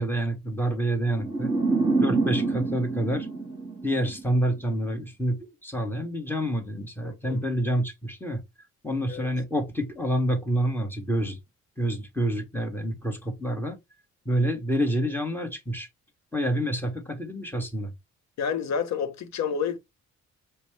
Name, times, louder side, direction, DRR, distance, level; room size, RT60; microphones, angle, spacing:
voice 1, 0.0-1.5 2.0-3.3 3.8-8.4 8.8-11.4 11.8-13.8 14.2-15.9 16.3-17.9, right 1 dB, 5° left, 1.4 m, -28 dB
sound 1, 1.2-4.4, right 3 dB, 15° right, 2.5 m, -26 dB
voice 2, 7.0-7.4 9.1-9.3 18.4-19.8, left 7 dB, 65° left, 0.8 m, -29 dB
5.1 x 2.2 x 3.2 m
cardioid pair, 90°, 30 cm